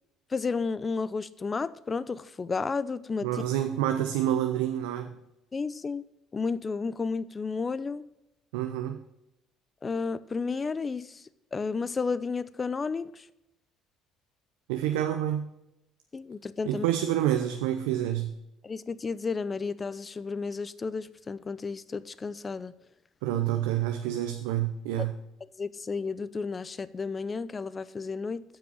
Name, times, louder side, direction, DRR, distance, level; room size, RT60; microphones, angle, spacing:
voice 1, 0.3-3.3 5.5-6.0 6.3-8.0 9.8-11.0 11.5-13.1 16.1-16.8 18.6-22.7 25.6-28.4, left 4 dB, 30° left, 0.5 m, -32 dB
voice 2, 3.2-5.1 8.5-9.0 14.7-15.5 16.6-18.3 23.2-25.1, right 11 dB, 85° right, 0.6 m, -28 dB
8.4 x 6.0 x 6.5 m
supercardioid pair, 75°, 0 cm